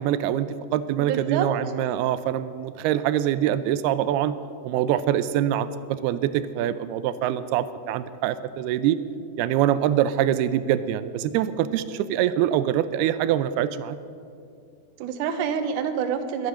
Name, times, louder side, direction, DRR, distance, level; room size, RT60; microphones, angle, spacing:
voice 1, 0.0-4.3 4.6-9.0 9.4-14.0, right 11 dB, 90° right, 13 dB, 2.6 m, -24 dB
voice 2, 1.0-1.5 15.0-16.5, right 7 dB, 65° right, 7 dB, 2.2 m, -27 dB
22.5 x 9.7 x 6.3 m, 2.4 s
omnidirectional pair, 4.5 m